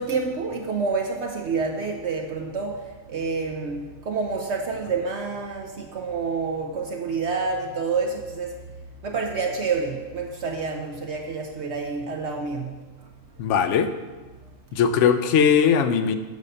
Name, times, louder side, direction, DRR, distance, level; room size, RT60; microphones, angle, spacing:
voice 1, 0.0-8.5 9.0-12.7, right 4 dB, 65° right, 2 dB, 1.0 m, -28 dB
voice 2, 13.4-13.9 14.7-16.2, left 7 dB, 70° left, 10 dB, 0.9 m, -19 dB
8.3 x 5.4 x 6.6 m, 1.3 s
omnidirectional pair, 1.3 m